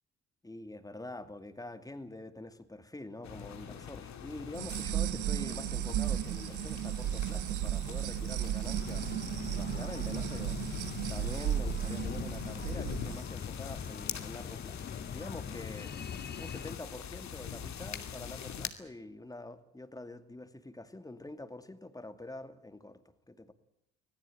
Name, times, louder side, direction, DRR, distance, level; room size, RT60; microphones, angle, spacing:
voice 1, 0.4-10.6 11.1-14.9 15.1-15.9 16.4-23.0 23.3-23.5, left 2 dB, 10° left, 2.4 m, -46 dB
sound 1, 3.2-18.7, left 8 dB, 65° left, 2.6 m, -43 dB
sound 2, 4.5-13.2, right 12 dB, 90° right, 1.0 m, -34 dB
Breathing, 8.7-16.8, left 7 dB, 35° left, 0.8 m, -43 dB
25.5 x 17.0 x 9.1 m
cardioid pair, 90°, 30 cm